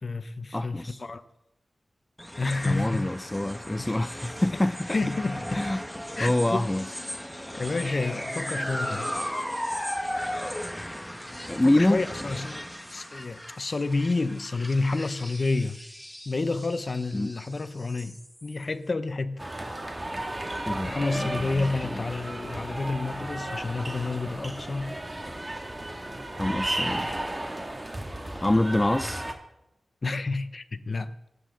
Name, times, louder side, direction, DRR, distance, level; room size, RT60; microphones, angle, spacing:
voice 1, 0.0-1.2 2.4-3.1 3.8-3.9 4.9-5.6 6.2-6.7 7.5-9.1 11.6-15.8 16.3-19.5 20.8-24.9 30.0-31.1, left 3 dB, 55° left, 0.8 m, -29 dB
voice 2, 0.5-1.0 2.6-5.0 5.5-5.8 6.2-6.9 11.5-12.0 17.1-17.3 20.7-22.0 26.4-27.1 28.4-29.2, left 1 dB, 20° left, 0.5 m, -26 dB
sound 1, 2.2-18.6, equal, 5° left, 1.4 m, -36 dB
sound 2, 19.4-29.3, right 1 dB, 30° right, 2.2 m, -34 dB
27.5 x 9.5 x 3.8 m
cardioid pair, 40°, 0 cm